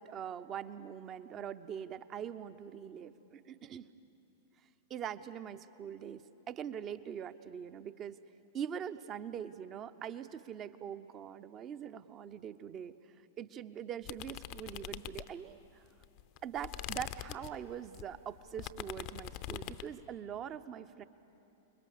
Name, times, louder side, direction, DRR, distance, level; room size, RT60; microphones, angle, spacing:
voice 1, 0.0-3.9 4.9-8.2 8.5-12.9 13.4-15.8 16.4-21.0, right 8 dB, 30° right, 13 dB, 0.7 m, -43 dB
sound 1, 14.0-15.6 16.0-19.9, left 15 dB, 40° left, 0.6 m, -44 dB
29.0 x 21.5 x 6.8 m, 2.9 s
figure-of-eight pair, 100°, 0 cm